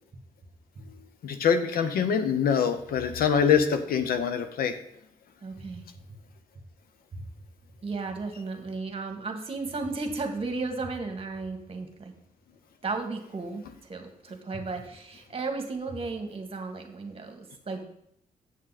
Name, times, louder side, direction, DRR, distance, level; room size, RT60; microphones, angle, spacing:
voice 1, 1.2-4.7, left 7 dB, 90° left, 9 dB, 0.9 m, -24 dB
voice 2, 5.4-5.8 7.8-12.1 12.8-17.8, right 3 dB, 40° right, 5 dB, 1.7 m, -34 dB
8.6 x 6.5 x 4.1 m, 0.73 s
cardioid pair, 85°, 15 cm